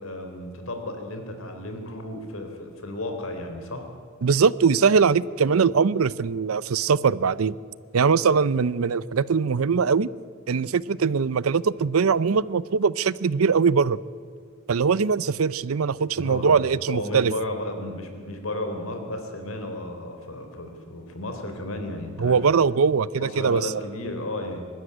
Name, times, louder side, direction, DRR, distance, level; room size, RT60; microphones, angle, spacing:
voice 1, 0.0-3.9 16.2-16.6 16.9-22.4 23.2-24.7, left 1 dB, 75° left, 5 dB, 3.6 m, -33 dB
voice 2, 4.2-7.5 7.9-10.1 10.5-14.0 14.7-17.3 22.2-23.8, right 5 dB, 90° right, 20 dB, 0.6 m, -21 dB
23.5 x 13.0 x 9.7 m, 2.1 s
head